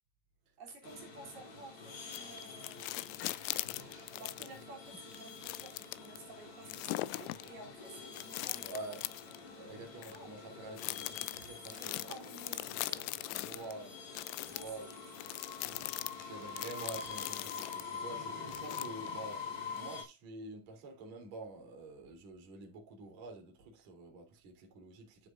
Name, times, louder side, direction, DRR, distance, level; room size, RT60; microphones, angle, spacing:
voice 1, 0.6-3.3 4.1-8.8 10.0-10.3 11.7-13.9 14.5-15.1 15.4-15.8, right 2 dB, 55° right, 5.0 m, -53 dB
sound 1, 0.8-20.0, left 5 dB, 60° left, 5.6 m, -46 dB
sound 2, 2.1-4.6 5.1-6.2 6.7-7.5 8.1-9.4 10.0-10.2 10.8-13.7 14.2-17.9 18.5-19.2 19.8-19.9, left 19 dB, 85° left, 3.1 m, -41 dB
voice 2, 8.6-9.0 9.6-12.1 13.2-14.0 14.4-14.9 16.2-25.3, right 2 dB, 40° right, 4.3 m, -47 dB
14.5 x 8.0 x 2.6 m
omnidirectional pair, 5.4 m